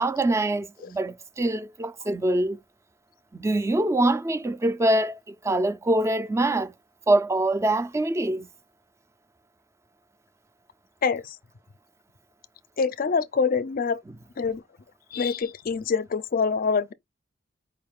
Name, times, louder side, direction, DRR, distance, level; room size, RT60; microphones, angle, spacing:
voice 1, 0.0-2.6 3.3-6.7 7.1-8.5, right 1 dB, 15° right, 0.3 m, -24 dB
voice 2, 11.0-11.4 12.8-14.0 14.4-14.6 15.1-16.9, left 5 dB, 50° left, 0.4 m, -25 dB
4.7 x 2.4 x 3.4 m
head